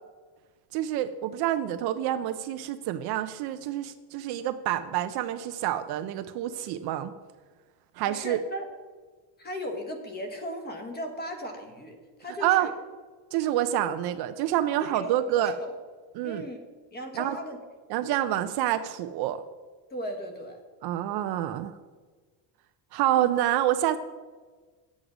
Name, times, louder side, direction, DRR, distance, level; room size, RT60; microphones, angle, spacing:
voice 1, 0.7-7.1 8.0-8.4 12.4-12.7 13.3-15.5 16.2-16.4 17.1-17.4 17.9-19.4 20.8-21.7 22.9-24.0, right 12 dB, 55° right, 11 dB, 0.5 m, -27 dB
voice 2, 8.1-8.7 9.4-12.7 13.7-13.8 14.8-15.7 16.2-16.6 16.9-17.6 19.9-20.6, equal, 20° left, 5 dB, 1.2 m, -37 dB
9.5 x 8.0 x 4.9 m, 1.4 s
cardioid pair, 160°, 47 cm